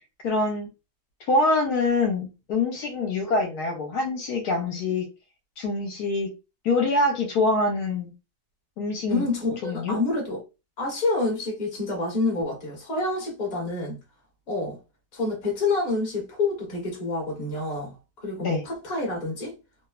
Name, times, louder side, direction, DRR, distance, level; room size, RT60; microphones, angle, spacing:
voice 1, 0.2-0.7 1.3-5.0 5.6-6.3 6.6-8.1 8.8-9.3 9.6-10.0 18.4-18.6, left 2 dB, 70° left, 1.2 m, -25 dB
voice 2, 9.1-10.4 10.8-14.0 14.5-14.8 15.1-19.5, left 2 dB, 30° left, 0.9 m, -28 dB
3.1 x 2.1 x 2.3 m
omnidirectional pair, 1.8 m